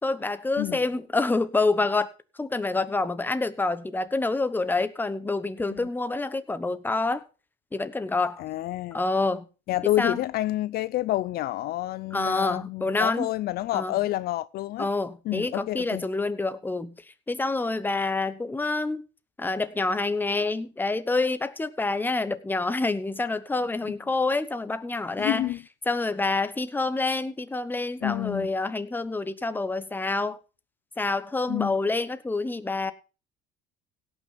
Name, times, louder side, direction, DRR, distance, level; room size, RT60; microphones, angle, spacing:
voice 1, 0.0-2.1 2.4-7.2 7.7-8.4 8.9-9.5 10.0-10.2 12.1-13.3 13.7-13.9 14.8-16.9 17.3-19.0 19.4-25.5 25.9-30.4 31.0-32.9, left 3 dB, 10° left, 1.1 m, -27 dB
voice 2, 8.4-9.0 9.7-14.9 15.3-16.0 25.2-25.6 28.0-28.5 31.5-31.8, left 16 dB, 60° left, 0.5 m, -29 dB
17.0 x 6.3 x 5.7 m
cardioid pair, 120°, 18 cm